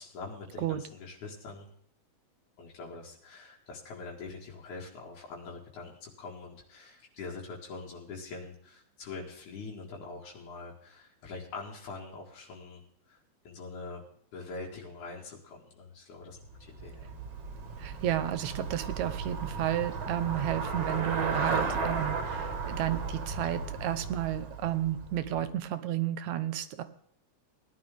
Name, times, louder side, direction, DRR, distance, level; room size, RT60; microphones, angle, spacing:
voice 1, 0.0-1.7 2.6-12.8 13.1-13.2 13.5-14.0 14.3-17.1, left 3 dB, 80° left, -2 dB, 3.4 m, -44 dB
Traffic noise roadway noise / Bicycle, 16.4-25.5, right 4 dB, 55° right, 2.7 m, -35 dB
voice 2, 17.8-26.8, right 12 dB, 75° right, 11 dB, 2.0 m, -32 dB
18.0 x 11.0 x 3.5 m, 0.66 s
omnidirectional pair, 3.4 m